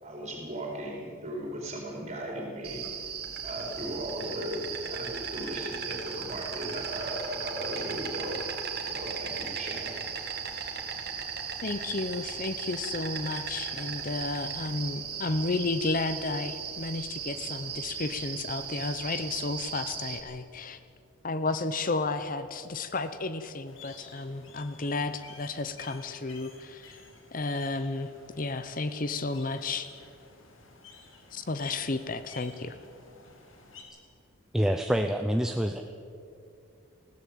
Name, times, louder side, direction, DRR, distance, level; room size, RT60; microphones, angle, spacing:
voice 1, 0.0-2.9 3.4-8.4 8.8-9.9, equal, 30° right, 0 dB, 4.9 m, -37 dB
Insect, 2.6-20.2, right 6 dB, 50° right, 2.3 m, -37 dB
voice 2, 11.6-20.8 21.2-27.0 27.3-29.9 31.3-32.8, left 3 dB, 40° left, 11 dB, 0.7 m, -32 dB
sound 1, 23.7-33.8, left 4 dB, 65° left, 3.5 m, -52 dB
voice 3, 34.5-35.8, equal, ahead, 5 dB, 0.6 m, -26 dB
20.0 x 16.0 x 8.5 m, 2.5 s
head